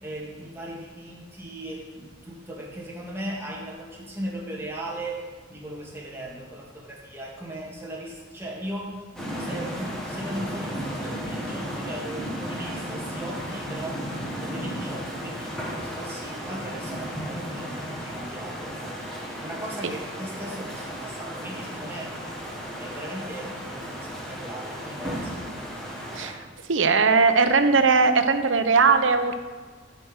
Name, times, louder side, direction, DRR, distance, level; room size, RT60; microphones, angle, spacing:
voice 1, 0.0-5.2 5.5-9.0 9.3-14.0 14.4-18.7 19.4-22.2 22.8-25.4, right 1 dB, 15° right, -4 dB, 2.0 m, -37 dB
sound 1, 9.2-26.3, equal, 5° left, 1.7 m, -34 dB
voice 2, 26.7-29.4, right 4 dB, 85° right, 9 dB, 0.8 m, -19 dB
13.5 x 5.3 x 6.4 m, 1.5 s
head